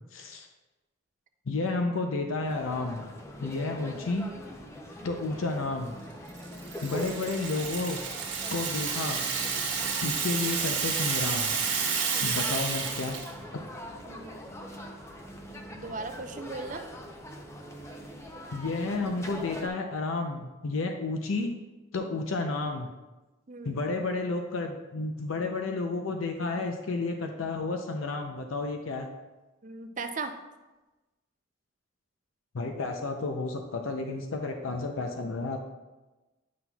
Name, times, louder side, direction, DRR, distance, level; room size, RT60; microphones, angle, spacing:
voice 1, 0.1-0.5 1.5-3.0 3.4-4.3 5.0-5.9 6.8-8.0 8.5-9.2 10.0-11.5 12.2-13.2 13.5-13.6 18.5-21.5 21.9-22.9 23.6-29.1 32.5-35.6, left 3 dB, 85° left, 4 dB, 0.6 m, -31 dB
sound 1, 2.4-19.7, equal, 15° left, 0.6 m, -43 dB
Rattle (instrument), 6.4-13.3, right 6 dB, 60° right, 1.2 m, -30 dB
voice 2, 14.1-14.5 15.7-16.9 23.5-23.8 29.6-30.3, right 3 dB, 40° right, 7 dB, 0.5 m, -37 dB
9.4 x 5.8 x 2.3 m, 1.1 s
head